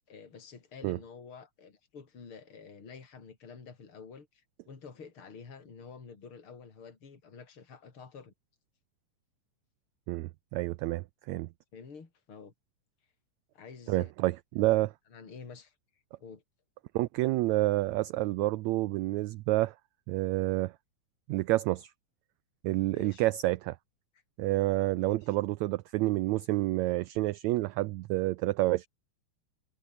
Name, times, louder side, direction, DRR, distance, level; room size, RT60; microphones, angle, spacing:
voice 1, 0.1-8.3 11.7-12.5 13.5-14.1 15.1-15.7 16.2-16.4 22.9-23.3 24.9-25.4, left 5 dB, 40° left, 4.5 m, -49 dB
voice 2, 10.1-11.5 13.9-14.9 16.9-19.7 20.1-20.7 21.3-21.9 22.6-23.8 24.4-28.9, right 18 dB, 80° right, 1.7 m, -29 dB
omnidirectional pair, 3.7 m